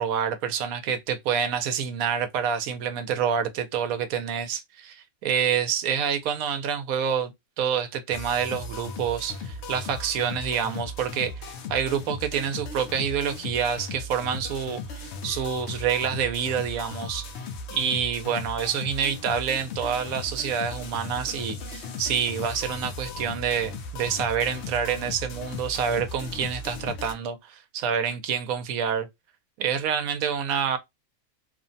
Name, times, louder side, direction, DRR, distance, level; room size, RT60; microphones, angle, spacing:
voice 1, 0.0-7.3 7.6-17.4 17.7-29.1 29.6-30.8, right 7 dB, 75° right, 1.0 m, -27 dB
sound 1, 8.1-27.1, left 3 dB, 65° left, 0.7 m, -37 dB
3.1 x 2.1 x 2.6 m
omnidirectional pair, 1.5 m